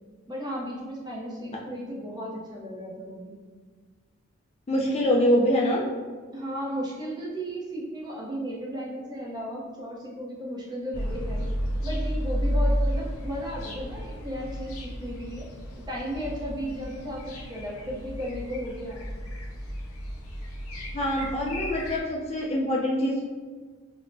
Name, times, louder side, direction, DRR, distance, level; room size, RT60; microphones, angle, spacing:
voice 1, 0.3-3.3 6.3-11.5 11.8-15.5 15.9-19.0, equal, 20° right, -4 dB, 0.6 m, -35 dB
voice 2, 4.7-5.8 20.9-23.2, equal, 30° left, -2 dB, 0.3 m, -24 dB
sound 1, 10.9-22.0, equal, 90° left, 0.5 m, -32 dB
5.2 x 2.0 x 2.6 m, 1.5 s
head